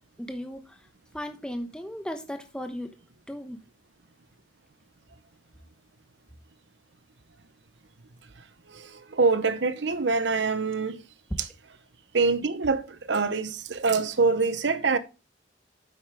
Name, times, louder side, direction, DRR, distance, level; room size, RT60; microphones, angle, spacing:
voice 1, 0.2-0.8 1.1-2.9 3.3-3.6, equal, 5° left, 1.0 m, -36 dB
voice 2, 8.7-11.0 11.4-11.5 12.1-15.0, right 4 dB, 75° right, 0.8 m, -25 dB
9.0 x 7.8 x 3.6 m
head